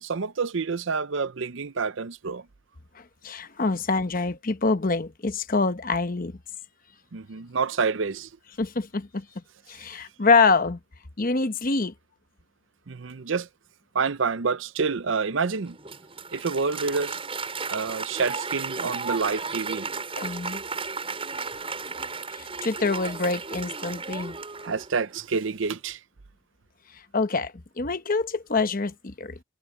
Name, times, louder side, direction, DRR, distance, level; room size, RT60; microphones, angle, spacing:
voice 1, 0.0-2.5 7.1-8.3 12.9-13.5 13.9-15.8 16.3-17.2 17.7-19.9 23.9-24.0 24.6-26.0, right 5 dB, 65° right, 0.6 m, -28 dB
voice 2, 2.9-6.4 8.6-9.3 9.7-10.8 11.2-11.9 20.2-20.6 22.3-24.4 26.9-29.4, left 4 dB, 40° left, 0.9 m, -25 dB
Applause, 15.6-25.2, right 4 dB, 25° right, 6.6 m, -34 dB
head